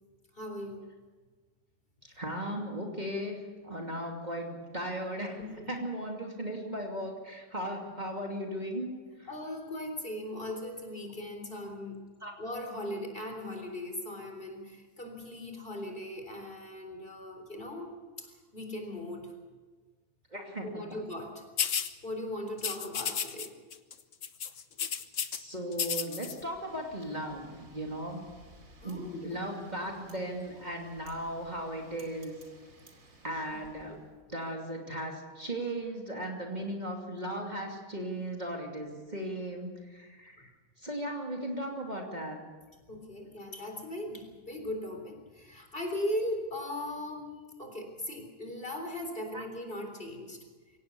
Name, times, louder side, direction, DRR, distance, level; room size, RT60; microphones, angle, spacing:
voice 1, 0.3-0.9 5.4-5.7 9.3-12.0 12.4-17.9 18.2-19.3 20.6-21.7 22.0-23.5 28.8-29.4 29.8-29.9 40.4-40.5 42.9-47.3 47.6-50.4, left 1 dB, 35° left, 3 dB, 3.9 m, -38 dB
voice 2, 2.0-5.4 5.7-8.9 9.2-9.3 12.2-12.3 20.3-20.8 25.3-28.3 28.8-32.3 33.2-34.0 34.3-40.5 40.8-42.4 49.3-49.4, right 1 dB, 30° right, 0 dB, 2.8 m, -37 dB
sound 1, 21.6-21.9 22.6-23.5 23.7-23.9 24.2-25.4 25.7-26.3, left 7 dB, 60° left, 1.3 m, -32 dB
Wind, 26.0-34.2, right 1 dB, 65° right, 3.1 m, -57 dB
24.0 x 18.0 x 7.0 m, 1.4 s
omnidirectional pair, 1.5 m